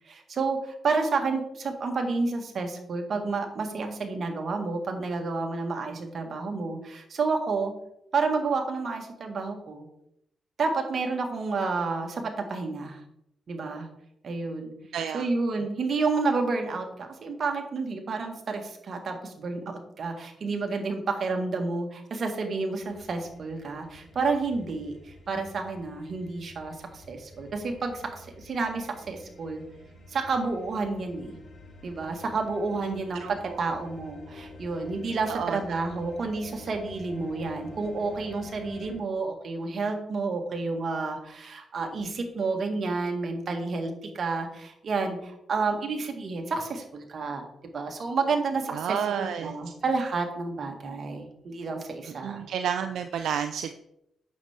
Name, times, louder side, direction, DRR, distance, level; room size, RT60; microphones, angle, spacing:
voice 1, 0.1-7.8 8.1-9.9 10.6-13.0 13.5-13.9 14.2-14.7 15.1-29.6 30.1-31.4 31.8-52.5, right 4 dB, 55° right, 4 dB, 1.7 m, -30 dB
voice 2, 14.9-15.3 32.9-33.6 35.3-35.6 48.7-49.5 52.1-53.7, right 8 dB, 80° right, 7 dB, 0.4 m, -31 dB
sound 1, 22.8-39.0, left 1 dB, 60° left, 3.6 m, -48 dB
8.7 x 6.8 x 3.6 m, 0.79 s
cardioid pair, 65°, 0 cm